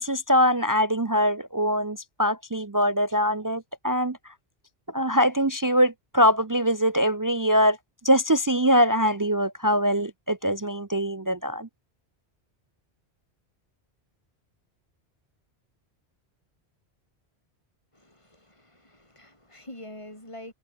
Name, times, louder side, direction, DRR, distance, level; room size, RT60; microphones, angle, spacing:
voice 1, 0.0-4.2 4.9-7.8 8.0-11.7, equal, 25° right, 0.4 m, -23 dB
voice 2, 17.9-20.5, left 1 dB, 25° left, 6.4 m, -45 dB
omnidirectional pair, 1.1 m